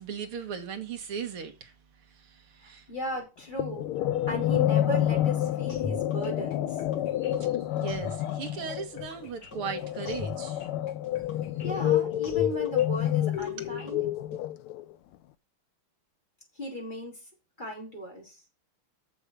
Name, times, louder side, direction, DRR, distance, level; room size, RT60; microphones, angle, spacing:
voice 1, 0.0-1.7 2.0-2.9 7.2-10.7, right 6 dB, 80° right, 2.5 m, -38 dB
voice 2, 2.6-3.9 4.3-6.8 11.6-14.0 16.5-17.3 17.6-18.4, equal, 20° left, 4.4 m, -36 dB
sound 1, 3.6-14.9, left 12 dB, 80° left, 1.6 m, -28 dB
sound 2, 5.7-14.4, left 3 dB, 50° left, 2.7 m, -42 dB
7.2 x 6.9 x 6.8 m
omnidirectional pair, 2.4 m